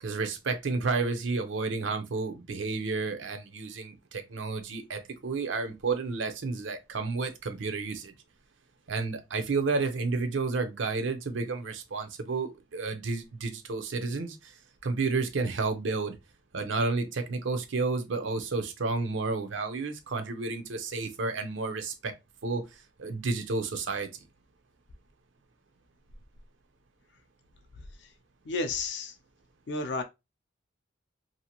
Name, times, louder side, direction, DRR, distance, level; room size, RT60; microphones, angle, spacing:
voice 1, 0.0-8.1 8.9-14.5 14.8-16.2 16.5-22.1 22.4-22.7 23.0-24.1, right 3 dB, 75° right, 0.6 m, -31 dB
voice 2, 28.5-29.1 29.7-30.0, left 3 dB, 60° left, 0.4 m, -31 dB
2.7 x 2.5 x 2.8 m
head